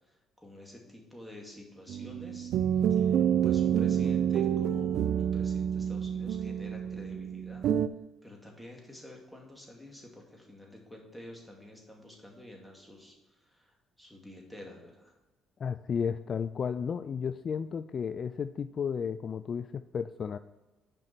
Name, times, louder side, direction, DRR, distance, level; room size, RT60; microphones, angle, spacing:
voice 1, 0.0-2.5 2.8-7.7 8.2-15.1, left 1 dB, 5° left, 0 dB, 2.3 m, -49 dB
sound 1, 1.9-7.9, right 9 dB, 70° right, 0.3 m, -28 dB
voice 2, 15.6-20.4, left 6 dB, 50° left, 12 dB, 0.3 m, -33 dB
6.7 x 5.1 x 6.0 m, 1.1 s
supercardioid pair, 75°, 0 cm